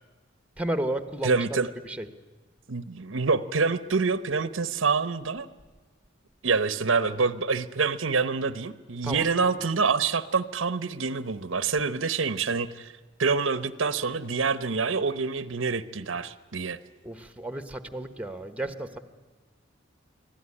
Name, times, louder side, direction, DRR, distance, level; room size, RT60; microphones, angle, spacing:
voice 1, 0.6-1.4 1.8-2.1 9.0-9.3 17.0-19.0, right 1 dB, 5° right, 10 dB, 1.1 m, -32 dB
voice 2, 1.2-1.7 2.7-5.5 6.4-12.9 13.2-16.8, right 4 dB, 85° right, 13 dB, 0.9 m, -26 dB
24.5 x 16.0 x 9.8 m, 1.4 s
head